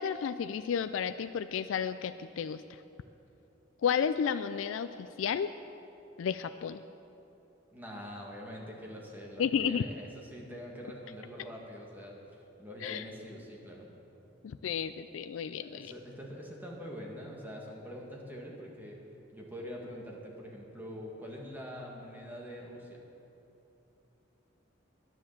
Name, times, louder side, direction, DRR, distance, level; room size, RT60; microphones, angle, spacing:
voice 1, 0.0-2.6 3.8-5.5 6.2-6.8 9.4-9.8 12.8-13.0 14.4-15.9, left 7 dB, 85° left, 11 dB, 0.3 m, -32 dB
voice 2, 7.7-12.2 12.6-13.9 15.6-19.0 19.3-23.0, equal, 10° right, -2 dB, 1.7 m, -44 dB
10.5 x 9.8 x 7.2 m, 2.9 s
head